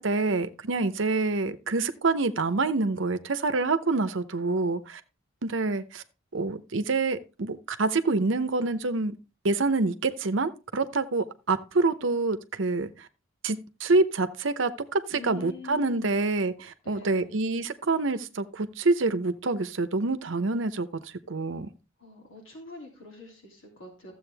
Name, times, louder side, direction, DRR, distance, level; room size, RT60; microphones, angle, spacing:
voice 1, 0.0-5.0 5.4-6.0 6.3-9.1 9.4-12.9 13.4-16.5 16.9-20.9 21.3-21.7, right 3 dB, 65° right, 0.8 m, -26 dB
voice 2, 15.1-16.3 16.8-17.3 22.0-24.1, left 3 dB, 70° left, 3.0 m, -44 dB
13.0 x 7.8 x 3.4 m
head